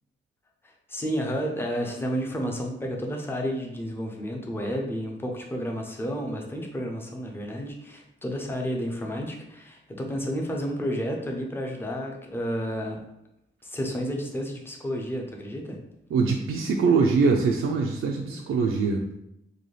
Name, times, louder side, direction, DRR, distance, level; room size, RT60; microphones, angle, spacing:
voice 1, 0.9-13.0 13.6-15.8 18.2-18.4, equal, 10° left, 1 dB, 0.5 m, -31 dB
voice 2, 16.1-19.0, right 4 dB, 85° right, 0 dB, 0.4 m, -23 dB
4.0 x 2.2 x 3.2 m, 0.80 s
wide cardioid pair, 160°, 20 cm